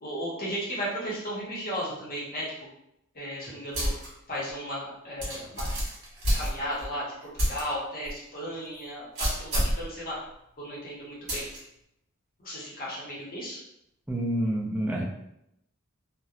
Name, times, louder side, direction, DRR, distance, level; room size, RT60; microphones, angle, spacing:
voice 1, 0.0-2.5 3.1-3.9 4.3-5.7 6.3-10.2 10.6-11.5 12.4-13.6, equal, 40° left, -6 dB, 0.7 m, -35 dB
sound 1, 3.7-4.1 4.5-4.6 5.2-6.9 7.4-7.6 8.1-8.2 9.2-9.8 11.3-11.6, equal, 65° right, 1.3 m, -28 dB
voice 2, 14.1-15.0, right 1 dB, 5° right, -3 dB, 0.3 m, -28 dB
2.8 x 2.0 x 2.3 m, 0.80 s
head